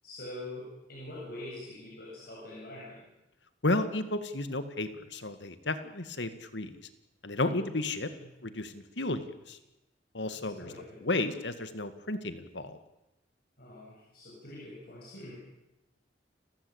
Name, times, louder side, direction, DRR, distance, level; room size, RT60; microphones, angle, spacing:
voice 1, 0.0-3.0 7.4-7.7 8.0-8.3 10.3-11.2 13.6-15.3, left 1 dB, 55° left, -5 dB, 7.4 m, -45 dB
voice 2, 3.6-6.8 7.2-8.1 8.4-9.6 10.1-10.7 11.0-12.8, left 2 dB, 75° left, 11 dB, 2.0 m, -32 dB
30.0 x 14.5 x 8.8 m, 0.94 s
head